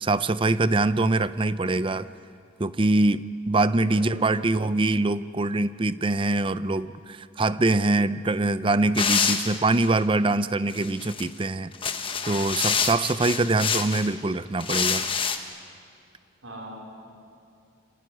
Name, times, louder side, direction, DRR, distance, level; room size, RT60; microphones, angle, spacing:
voice 1, 0.0-2.1 2.6-11.7 12.2-15.0, right 2 dB, 25° right, 14 dB, 0.5 m, -24 dB
voice 2, 3.9-4.4 16.4-16.8, right 1 dB, 85° right, -1 dB, 4.6 m, -41 dB
sound 1, 8.9-9.9 10.7-11.2 11.7-14.1 14.6-15.4, left 6 dB, 25° left, 1.3 m, -27 dB
26.0 x 19.0 x 9.7 m, 2.6 s
head